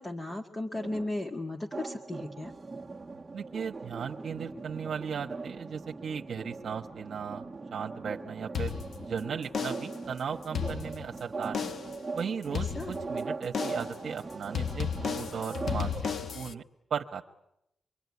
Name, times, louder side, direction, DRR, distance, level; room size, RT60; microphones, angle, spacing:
voice 1, 0.0-2.5 12.5-13.0, left 2 dB, 25° left, 3 dB, 1.8 m, -36 dB
sound 1, 0.7-16.1, right 3 dB, 20° right, 1.3 m, -40 dB
voice 2, 3.3-7.4 7.7-8.7 9.1-11.7 12.1-15.9 16.3-16.6 16.9-17.3, right 7 dB, 60° right, 3 dB, 1.2 m, -36 dB
sound 2, 8.5-9.2 9.5-10.0 10.4-11.2 11.5-12.0 12.5-13.2 13.5-14.0 14.5-16.5, left 7 dB, 65° left, 1.1 m, -34 dB
26.0 x 23.5 x 9.6 m, 0.83 s
wide cardioid pair, 150°, 0 cm